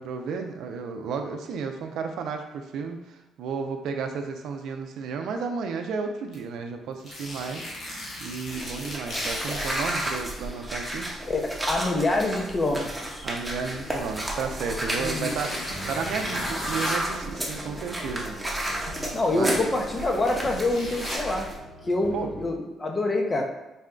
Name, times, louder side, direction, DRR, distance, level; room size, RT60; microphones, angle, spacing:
voice 1, 0.0-7.9 8.2-11.1 13.2-18.7 19.3-19.6 22.1-22.3, right 5 dB, 80° right, 5 dB, 0.4 m, -33 dB
sound 1, 6.3-6.4 7.0-10.2 11.1-11.2 14.2-14.3 15.2-17.0 19.2-19.3 19.9-21.2, left 1 dB, 55° left, 1.1 m, -36 dB
sound 2, 8.5-21.6, right 1 dB, 10° right, 0.8 m, -33 dB
voice 2, 11.3-13.3 15.0-15.3 19.1-21.5 21.9-23.4, left 2 dB, 30° left, 1 dB, 0.7 m, -26 dB
sound 3, 13.6-22.6, equal, 80° left, 0.9 m, -44 dB
4.0 x 2.2 x 3.7 m, 1.0 s
cardioid pair, 90°, 0 cm